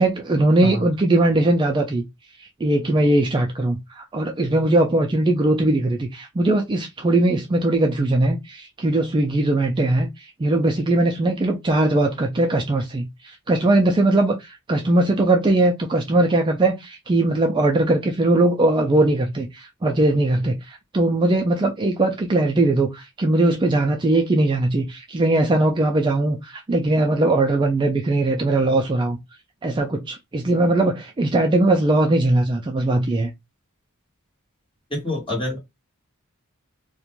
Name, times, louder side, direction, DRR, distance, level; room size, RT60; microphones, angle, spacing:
voice 1, 0.0-2.0 2.4-29.2 29.6-33.3, right 2 dB, 20° right, 0.3 m, -20 dB
voice 2, 34.9-35.6, left 1 dB, 25° left, 1.2 m, -26 dB
2.4 x 2.1 x 2.9 m
head